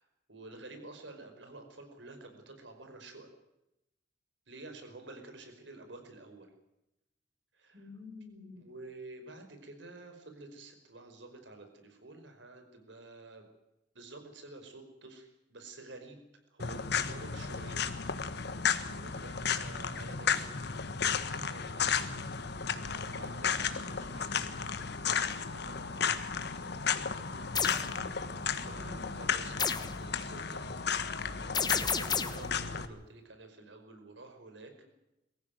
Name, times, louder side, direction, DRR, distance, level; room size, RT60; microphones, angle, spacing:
voice 1, 0.0-3.3 4.5-6.5 7.5-7.9 8.6-13.5 14.0-18.4 18.8-20.5 21.0-22.3 23.1-24.4 25.5-26.0 28.5-34.9, right 2 dB, 70° right, 6 dB, 5.2 m, -50 dB
voice 2, 7.7-8.6 27.6-28.1 28.6-29.1, left 3 dB, 45° right, 0 dB, 6.7 m, -49 dB
sound 1, 16.6-32.9, left 6 dB, 60° left, 1.6 m, -34 dB
sound 2, 27.5-27.9 29.6-30.0 31.5-32.5, left 6 dB, 20° left, 1.1 m, -31 dB
23.0 x 15.0 x 9.3 m, 0.90 s
head